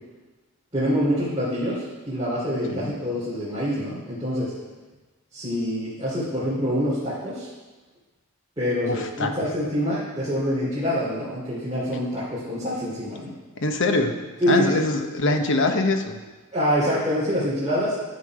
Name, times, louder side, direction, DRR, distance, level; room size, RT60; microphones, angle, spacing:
voice 1, 0.7-4.5 5.3-7.5 8.6-13.3 14.4-14.7 16.5-18.0, equal, 20° right, -11 dB, 3.0 m, -25 dB
voice 2, 8.8-9.3 13.6-14.1 14.5-16.2, left 2 dB, 60° left, 6 dB, 0.9 m, -23 dB
11.0 x 7.0 x 4.7 m, 1.2 s
head